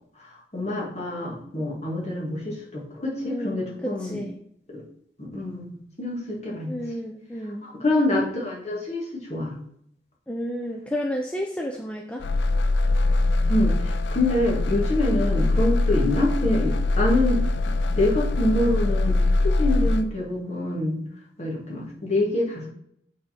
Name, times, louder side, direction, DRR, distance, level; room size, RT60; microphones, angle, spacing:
voice 1, 0.2-4.2 4.7-4.8 5.2-6.7 7.6-9.5 13.5-21.0 21.4-22.7, left 1 dB, 40° left, -3 dB, 2.0 m, -26 dB
voice 2, 3.3-4.4 6.6-7.7 10.3-12.2, equal, 5° left, 1 dB, 0.5 m, -31 dB
sound 1, 12.2-20.0, left 2 dB, 80° left, 0.5 m, -22 dB
8.6 x 4.2 x 4.3 m, 0.71 s
head